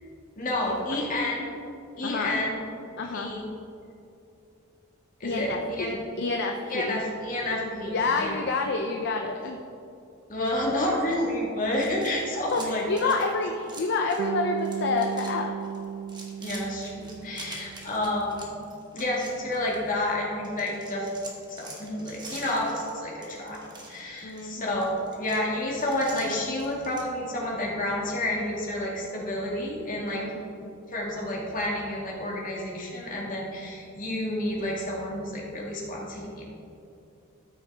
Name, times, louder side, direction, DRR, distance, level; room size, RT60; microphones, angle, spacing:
voice 1, 0.4-1.5 2.0-2.6 3.1-3.4 5.2-5.9 6.7-8.4 10.3-13.2 16.4-18.6 18.9-21.2 21.5-23.6 23.9-30.2 30.9-36.4, left 1 dB, 40° left, -3 dB, 2.0 m, -30 dB
voice 2, 2.0-2.4 3.0-3.3 5.2-7.0 7.9-9.6 12.5-15.5 24.2-24.8 30.1-30.7, left 3 dB, 55° left, 3 dB, 0.6 m, -29 dB
sound 1, 11.7-14.3 14.6-15.3 15.6-20.1 20.4-27.1, right 2 dB, 20° right, 1.3 m, -45 dB
Bass guitar, 14.2-18.3, right 8 dB, 90° right, 0.4 m, -35 dB
13.0 x 6.2 x 3.4 m, 2.6 s
head